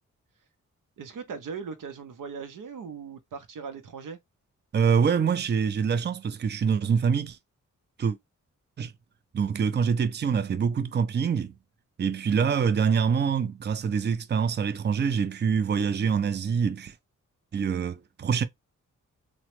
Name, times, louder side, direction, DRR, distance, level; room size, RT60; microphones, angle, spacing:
voice 1, 1.0-4.2, right 5 dB, 75° right, 0.7 m, -39 dB
voice 2, 4.7-7.4 8.0-8.2 8.8-8.9 9.3-11.5 12.0-16.9 17.5-18.4, right 6 dB, 35° right, 0.4 m, -25 dB
3.0 x 2.1 x 2.9 m
cardioid pair, 55°, 32 cm